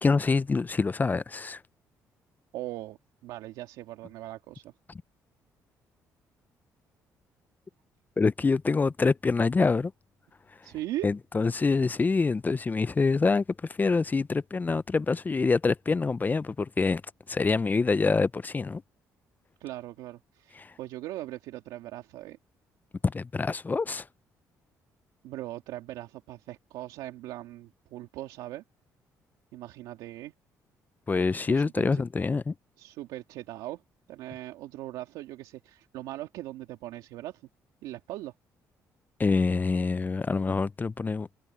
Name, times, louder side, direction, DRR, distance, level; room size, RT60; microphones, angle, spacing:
voice 1, 0.0-1.6 8.2-9.9 11.0-17.0 17.3-18.8 20.5-20.7 23.0-24.1 31.1-32.5 39.2-41.3, left 4 dB, 25° left, 0.6 m, -26 dB
voice 2, 2.5-4.7 10.6-11.1 19.6-22.4 25.2-28.6 29.5-30.3 31.4-32.0 32.8-33.8 34.1-37.4 37.8-38.3, right 15 dB, 90° right, 2.3 m, -40 dB
cardioid pair, 80°, 7 cm